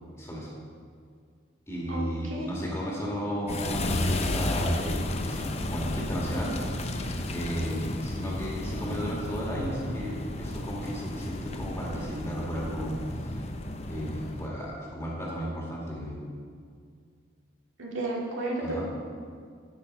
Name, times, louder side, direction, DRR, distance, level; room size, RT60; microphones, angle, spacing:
voice 1, 0.2-0.5 1.7-6.5 7.3-13.4 13.9-16.2 18.6-18.8, equal, 15° left, -4 dB, 2.0 m, -34 dB
voice 2, 1.9-2.5 17.8-18.8, right 2 dB, 80° right, -3 dB, 2.0 m, -32 dB
sound 1, 3.5-14.5, left 1 dB, 30° left, 0.6 m, -32 dB
10.0 x 8.2 x 4.7 m, 2.1 s
head